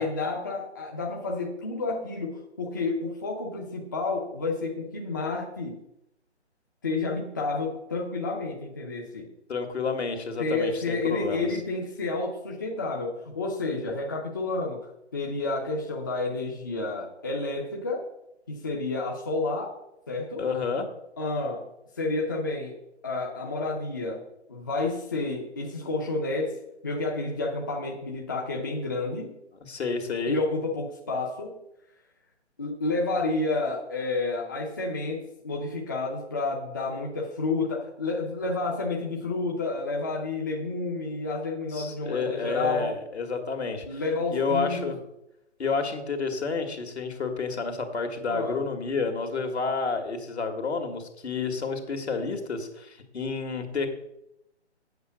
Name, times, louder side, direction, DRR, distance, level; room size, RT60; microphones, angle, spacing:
voice 1, 0.0-5.8 6.8-9.3 10.4-18.1 18.5-19.8 20.1-20.4 21.2-21.7 22.0-22.8 23.0-26.6 26.8-29.4 30.3-31.6 32.6-42.9 43.8-44.9 48.3-48.6, left 3 dB, 20° left, -1 dB, 0.6 m, -30 dB
voice 2, 9.5-11.5 20.4-20.9 29.6-30.4 41.7-44.0 44.3-45.0 45.6-53.9, left 4 dB, 70° left, 5 dB, 2.1 m, -30 dB
8.1 x 7.6 x 6.4 m, 0.84 s
hypercardioid pair, 165°, 35 cm